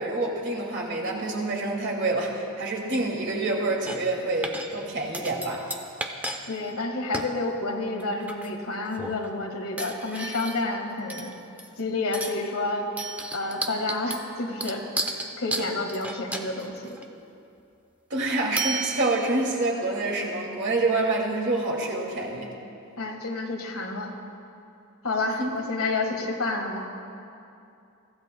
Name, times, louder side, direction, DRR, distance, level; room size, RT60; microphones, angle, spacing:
voice 1, 0.0-5.7 18.1-22.5 25.4-25.6, right 2 dB, 55° right, -2 dB, 2.2 m, -27 dB
sound 1, 3.9-4.2 4.4-4.8 5.1-6.4 6.7-6.8 7.1-7.3 8.0-8.6 8.9-9.2 9.8-10.7 11.1-11.8 12.1-12.5 13.0-17.0 18.6-19.4, right 2 dB, 5° right, 0.6 m, -33 dB
voice 2, 6.5-11.3 11.8-12.9 13.3-17.0 23.0-24.1 25.0-26.8, left 2 dB, 75° left, 3 dB, 1.6 m, -29 dB
24.0 x 15.0 x 2.2 m, 2.6 s
head